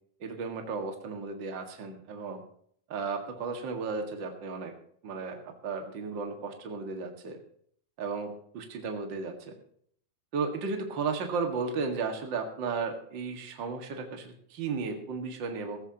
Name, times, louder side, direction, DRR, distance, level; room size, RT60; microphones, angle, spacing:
voice 1, 0.2-2.4 2.9-4.7 5.0-7.4 8.0-9.5 10.3-15.8, right 4 dB, 40° right, 4 dB, 2.0 m, -34 dB
16.0 x 14.5 x 3.0 m, 0.64 s
omnidirectional pair, 4.3 m